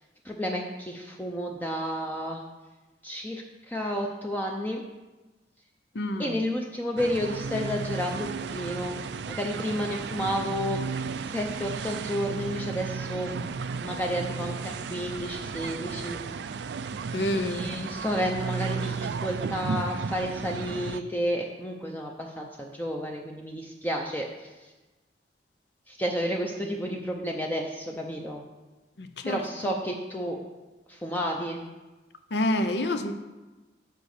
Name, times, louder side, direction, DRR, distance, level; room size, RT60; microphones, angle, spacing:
voice 1, 0.2-2.4 3.0-4.8 6.2-9.0 9.3-10.8 11.2-13.3 13.8-16.5 17.3-24.7 25.9-28.4 29.2-30.4 30.9-31.6, equal, 10° left, 0 dB, 0.6 m, -31 dB
voice 2, 5.9-6.4 17.1-17.7 29.0-29.7 32.3-33.1, left 1 dB, 70° left, 8 dB, 0.7 m, -28 dB
sound 1, 7.0-21.0, right 5 dB, 75° right, 0.4 m, -34 dB
8.0 x 5.1 x 6.5 m, 1.2 s
head